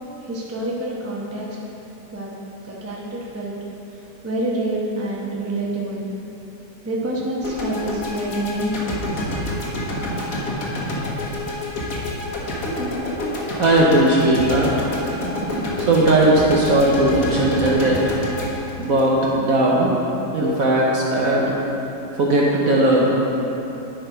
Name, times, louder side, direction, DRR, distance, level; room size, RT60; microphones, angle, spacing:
voice 1, 0.2-1.5 2.1-2.3 2.6-3.5 4.2-6.1 6.8-9.2, right 1 dB, 20° right, -4 dB, 0.4 m, -27 dB
sound 1, 7.4-19.7, left 1 dB, 50° left, 1.4 m, -28 dB
voice 2, 13.6-14.7 15.9-18.0 18.8-19.9 20.3-21.5 22.2-23.1, right 1 dB, 60° right, -4 dB, 1.0 m, -17 dB
10.5 x 4.4 x 5.0 m, 3.0 s
omnidirectional pair, 2.3 m